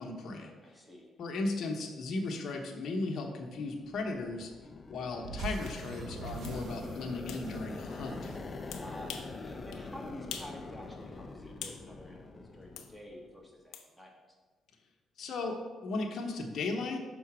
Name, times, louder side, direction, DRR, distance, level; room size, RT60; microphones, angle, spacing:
voice 1, 0.0-0.5 1.2-4.5 4.9-8.4 15.2-17.0, left 3 dB, 65° left, 2 dB, 0.9 m, -36 dB
voice 2, 0.6-1.1 8.7-14.1, left 1 dB, 5° right, -1 dB, 1.4 m, -49 dB
sound 1, 3.6-13.4, left 3 dB, 35° left, 0.5 m, -45 dB
sound 2, 5.2-9.6, right 3 dB, 65° right, 0.7 m, -44 dB
sound 3, 5.6-5.8 6.4-6.6 7.3-7.4 8.7-9.3 9.7-9.8 10.3-10.6 10.9-11.8 12.8-12.9 13.7-13.9, left 8 dB, 85° left, 0.6 m, -44 dB
5.8 x 3.8 x 6.0 m, 1.4 s
cardioid pair, 90°, 0 cm